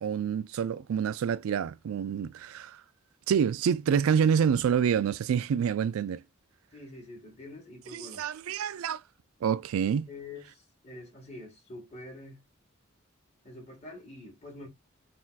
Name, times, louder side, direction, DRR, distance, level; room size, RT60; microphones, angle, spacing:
voice 1, 0.0-2.8 3.3-6.2 7.9-9.0 9.4-10.1, right 7 dB, 85° right, 0.3 m, -27 dB
voice 2, 6.7-8.2 10.1-12.4 13.4-14.7, left 2 dB, 30° left, 1.6 m, -46 dB
3.9 x 2.6 x 2.4 m
head